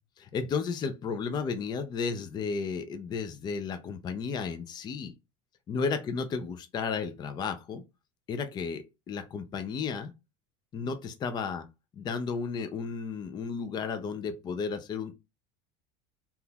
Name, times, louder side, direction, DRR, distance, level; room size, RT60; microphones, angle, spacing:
voice 1, 0.2-5.1 5.7-7.8 8.3-10.1 10.7-11.7 11.9-15.1, left 5 dB, 25° left, 0.4 m, -33 dB
3.6 x 2.8 x 2.3 m
supercardioid pair, 140°, 17 cm